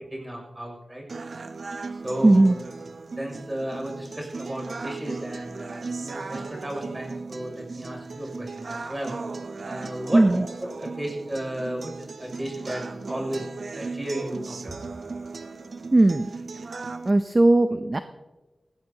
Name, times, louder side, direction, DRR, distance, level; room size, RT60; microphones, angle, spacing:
voice 1, 0.1-1.0 1.9-2.5 3.2-9.1 9.6-10.5 10.8-13.5 13.7-14.8, right 1 dB, 20° right, 1 dB, 6.7 m, -34 dB
sound 1, 1.1-17.1, right 4 dB, 75° right, 0.8 m, -37 dB
voice 2, 2.2-2.6 10.1-10.5 15.9-16.3 17.0-18.0, right 2 dB, 40° right, 9 dB, 0.7 m, -18 dB
20.0 x 17.5 x 2.9 m, 1.1 s
wide cardioid pair, 55°, 0 cm